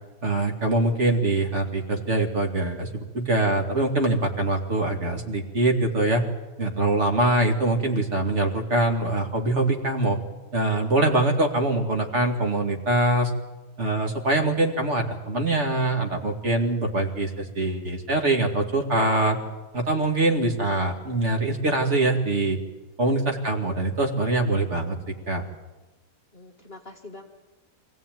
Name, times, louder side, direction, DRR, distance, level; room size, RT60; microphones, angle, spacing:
voice 1, 0.2-2.9 3.1-6.2 6.6-10.2 10.5-13.3 13.8-19.4 19.7-22.6 23.0-25.0 25.3-25.4, right 2 dB, 45° right, 2 dB, 2.6 m, -23 dB
voice 2, 23.3-23.7 26.3-27.3, left 2 dB, 35° left, 2 dB, 1.8 m, -45 dB
24.0 x 16.5 x 9.2 m, 1.1 s
omnidirectional pair, 1.8 m